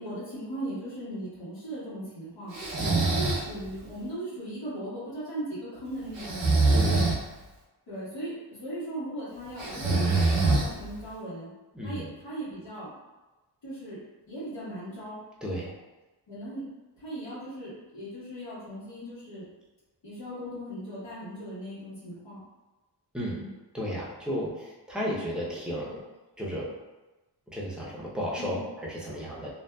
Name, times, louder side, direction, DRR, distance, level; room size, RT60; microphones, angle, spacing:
voice 1, 0.0-2.6 3.1-6.9 7.9-8.3 8.6-11.5 11.8-12.9 13.6-14.0 14.3-15.2 16.3-16.6 17.0-19.4 20.0-22.4 23.4-23.5 28.4-28.7, right 1 dB, 80° left, -11 dB, 1.3 m, -38 dB
Breathing, 2.5-3.5 6.2-7.2 9.6-11.0, right 3 dB, 85° right, 0.7 m, -24 dB
voice 2, 2.8-3.2 6.7-7.1 11.7-12.1 15.4-15.8 23.1-23.4 23.7-26.0 26.4-26.7 27.5-29.5, equal, ahead, -6 dB, 0.6 m, -33 dB
2.6 x 2.3 x 2.2 m, 1.1 s
wide cardioid pair, 90°, 43 cm